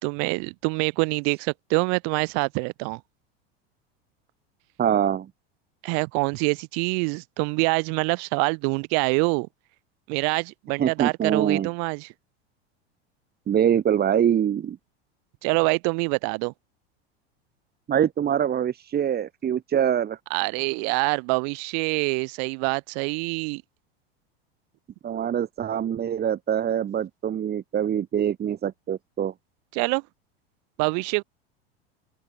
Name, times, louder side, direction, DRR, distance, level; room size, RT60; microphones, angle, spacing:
voice 1, 0.0-3.0 5.8-9.5 10.1-12.1 15.4-16.5 20.3-23.6 29.7-30.0 30.8-31.2, right 40 dB or more, 60° right, 3.5 m, -25 dB
voice 2, 4.8-5.3 10.8-11.7 13.5-14.8 17.9-20.2 25.0-29.3, right 9 dB, 30° right, 2.1 m, -24 dB
open air
hypercardioid pair, 95°, 31 cm